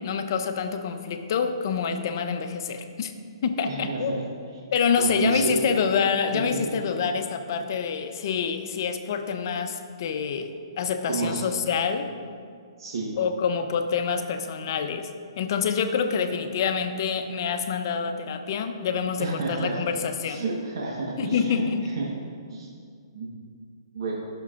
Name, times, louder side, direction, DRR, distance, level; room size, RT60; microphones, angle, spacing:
voice 1, 0.0-3.1 3.4-4.2 4.7-12.1 13.2-15.1 15.4-20.4 21.2-21.9, left 6 dB, 50° left, 7 dB, 0.6 m, -27 dB
voice 2, 3.7-4.2 5.0-5.6 6.3-6.7 7.0-7.1 11.0-11.4 12.8-13.1 19.2-19.8 20.2-22.7 23.1-23.3 23.9-24.2, right 3 dB, 60° right, -3 dB, 1.2 m, -30 dB
12.5 x 6.0 x 2.5 m, 2.2 s
hypercardioid pair, 150°, 3 cm